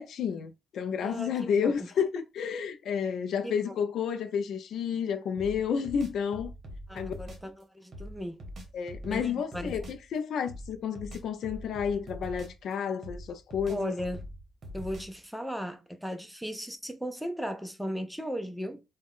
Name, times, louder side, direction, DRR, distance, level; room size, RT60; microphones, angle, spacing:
voice 1, 0.0-6.5 6.9-7.1 8.7-13.9, left 7 dB, 70° left, 0.3 m, -31 dB
voice 2, 1.0-1.9 3.4-3.7 6.9-8.4 9.1-9.8 13.7-14.2 14.7-18.8, equal, ahead, 0.5 m, -36 dB
sound 1, 5.4-7.5 7.9-10.1 10.5-12.7 13.0-15.3, equal, 50° right, 0.8 m, -43 dB
2.3 x 2.1 x 3.5 m
cardioid pair, 90°, 0 cm